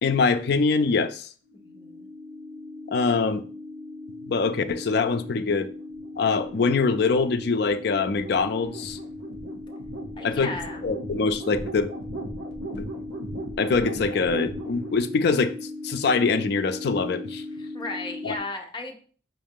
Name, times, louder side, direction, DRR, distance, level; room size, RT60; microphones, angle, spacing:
voice 1, 0.0-1.3 2.9-3.4 4.2-5.7 6.2-9.0 10.2-10.5 10.8-11.9 12.8-12.9 13.6-17.4 18.2-18.3, left 4 dB, 55° left, 0.4 m, -24 dB
sound 1, 1.5-18.4, left 1 dB, 65° right, 1.2 m, -37 dB
voice 2, 1.6-2.1 10.2-10.8 17.6-19.0, left 2 dB, 25° left, 0.7 m, -35 dB
5.5 x 2.6 x 3.6 m
head